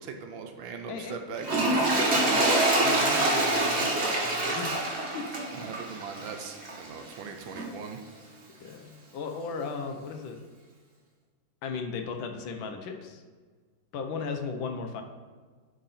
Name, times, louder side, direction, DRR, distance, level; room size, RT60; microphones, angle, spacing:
voice 1, 0.0-2.4 4.7-4.9 5.5-8.0, right 5 dB, 75° right, 5 dB, 1.4 m, -40 dB
voice 2, 0.9-1.2 2.7-4.8 5.1-5.7 8.6-10.4 11.6-13.2 13.9-15.0, left 5 dB, 75° left, 4 dB, 1.5 m, -36 dB
Toilet flush, 1.4-6.9 7.5-7.7, right 2 dB, 40° right, 1.2 m, -26 dB
10.5 x 3.8 x 4.1 m, 1.5 s
omnidirectional pair, 2.3 m